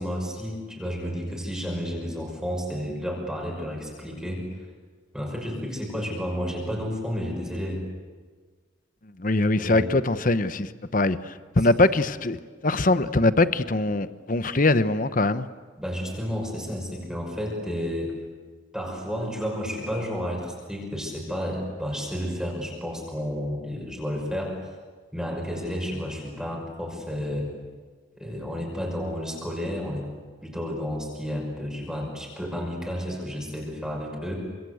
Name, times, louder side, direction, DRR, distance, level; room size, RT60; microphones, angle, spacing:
voice 1, 0.0-4.5 5.1-7.8 9.6-9.9 15.8-18.1 18.7-24.6 25.1-27.5 28.2-30.1 30.4-34.4, equal, 5° right, 5.9 m, -31 dB
voice 2, 9.2-12.4 12.6-15.5, left 2 dB, 45° left, 1.0 m, -22 dB
28.5 x 26.0 x 8.1 m
head